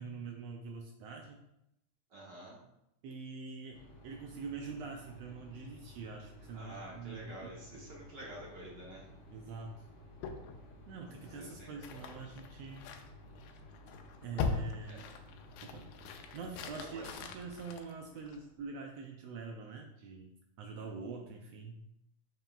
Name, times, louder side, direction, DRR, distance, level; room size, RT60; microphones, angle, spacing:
voice 1, 0.0-1.4 3.0-7.8 9.3-9.9 10.9-12.9 14.2-15.0 15.6-15.9 16.3-21.8, right 4 dB, 80° right, 2 dB, 1.5 m, -45 dB
voice 2, 2.1-2.6 6.5-9.1 11.2-11.7 14.9-15.0 16.7-17.0, right 1 dB, 55° right, -4 dB, 1.2 m, -48 dB
sound 1, 3.7-17.6, left 1 dB, 70° left, 1.2 m, -55 dB
sound 2, 10.2-18.7, left 5 dB, 85° left, 2.0 m, -42 dB
7.2 x 5.5 x 2.4 m, 0.84 s
omnidirectional pair, 3.4 m